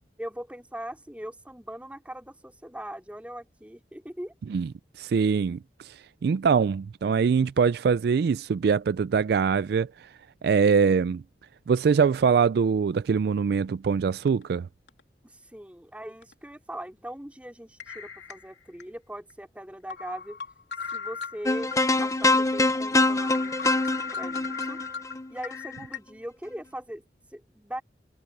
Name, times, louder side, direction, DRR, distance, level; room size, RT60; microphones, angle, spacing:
voice 1, 0.2-4.3 15.2-20.4 20.9-21.7 22.0-24.8 25.3-27.8, right 1 dB, 10° right, 2.7 m, -40 dB
voice 2, 5.0-10.1 10.4-11.2 11.7-14.7, right 6 dB, 60° right, 0.3 m, -23 dB
sound 1, 14.3-14.4 14.9-15.0 16.2-16.3 17.8-18.8 19.3-19.4 19.9-21.8 22.2-22.3 22.7-22.8 23.1-26.0, left 5 dB, 85° left, 3.1 m, -37 dB
sound 2, 21.5-25.8, left 2 dB, 20° left, 0.6 m, -24 dB
head